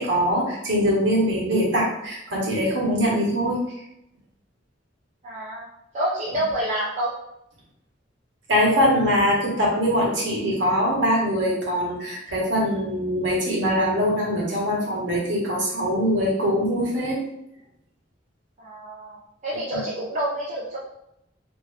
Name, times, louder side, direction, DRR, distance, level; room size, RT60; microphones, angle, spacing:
voice 1, 0.0-3.6 8.5-17.2 19.7-19.8, equal, 65° right, -4 dB, 1.1 m, -22 dB
voice 2, 5.2-5.7 5.9-7.1 18.6-19.2 19.4-20.8, right 1 dB, 40° right, -6 dB, 0.5 m, -28 dB
2.7 x 2.6 x 3.2 m, 0.81 s
head